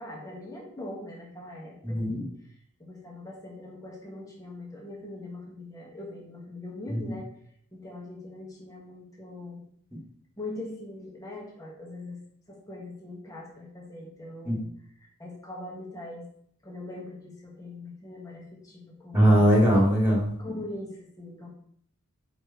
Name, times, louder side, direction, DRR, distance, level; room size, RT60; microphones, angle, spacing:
voice 1, 0.0-2.3 2.8-7.2 7.7-9.6 10.4-12.2 12.5-14.7 15.2-16.3 16.6-19.4 20.4-21.5, left 2 dB, 15° left, -2 dB, 1.6 m, -41 dB
voice 2, 1.8-2.2 6.9-7.0 9.9-10.0 14.4-14.5 19.1-20.4, equal, 10° right, -3 dB, 2.5 m, -21 dB
8.7 x 5.2 x 3.2 m, 0.63 s
head